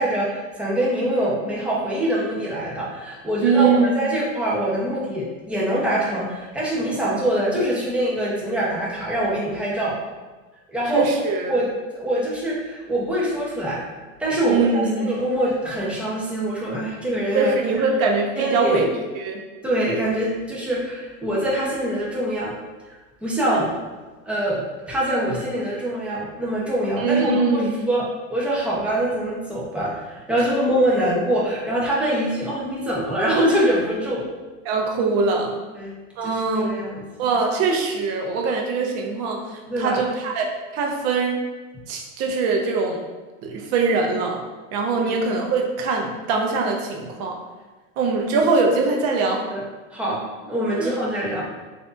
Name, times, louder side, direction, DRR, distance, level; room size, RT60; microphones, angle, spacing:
voice 1, 0.0-10.0 10.7-11.0 11.5-13.8 14.2-17.5 18.4-18.8 19.6-22.6 22.9-23.0 23.2-23.7 24.2-27.6 27.9-34.2 35.7-35.9 36.2-37.3 39.7-40.0 45.0-45.1 49.5-51.5, right 1 dB, 5° right, -6 dB, 0.7 m, -24 dB
voice 2, 3.4-3.9 10.9-11.5 14.5-15.1 17.3-18.9 19.2-19.4 27.0-27.9 34.7-35.5 36.2-36.8 37.2-39.4 39.8-40.5 40.7-41.4 41.9-43.0 43.4-44.4 44.7-47.4 48.0-49.4 50.8-50.9, right 4 dB, 40° right, 1 dB, 0.6 m, -22 dB
3.3 x 2.6 x 2.5 m, 1.3 s
hypercardioid pair, 115°, 40 cm